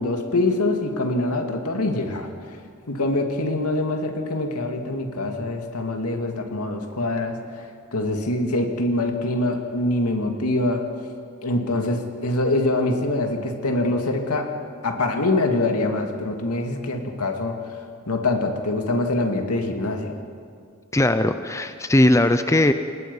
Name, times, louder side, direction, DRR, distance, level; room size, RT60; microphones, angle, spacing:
voice 1, 0.0-2.3 2.9-7.4 7.9-10.8 11.4-14.5 14.8-17.5 18.1-20.1, left 2 dB, 85° left, 4 dB, 2.4 m, -24 dB
voice 2, 20.9-22.7, left 1 dB, 15° left, 9 dB, 0.6 m, -18 dB
28.0 x 20.5 x 5.5 m, 2.2 s
head